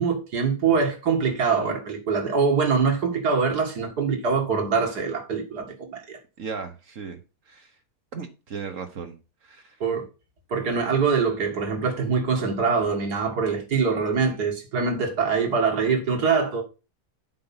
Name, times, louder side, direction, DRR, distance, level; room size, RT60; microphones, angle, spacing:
voice 1, 0.0-6.2 9.8-10.0 10.5-16.6, right 5 dB, 75° right, 2.4 m, -24 dB
voice 2, 6.4-7.2 7.5-7.7 8.1-9.8, right 5 dB, 55° right, 1.3 m, -36 dB
7.9 x 4.9 x 5.7 m
omnidirectional pair, 1.7 m